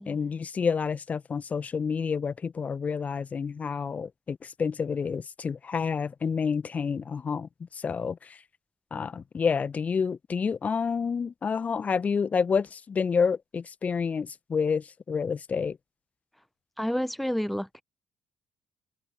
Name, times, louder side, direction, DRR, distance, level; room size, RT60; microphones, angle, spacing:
voice 1, 0.0-8.4 8.9-15.8, left 6 dB, 35° left, 1.5 m, -29 dB
voice 2, 16.8-17.8, equal, ahead, 1.4 m, -30 dB
figure-of-eight pair, 45°, 4 cm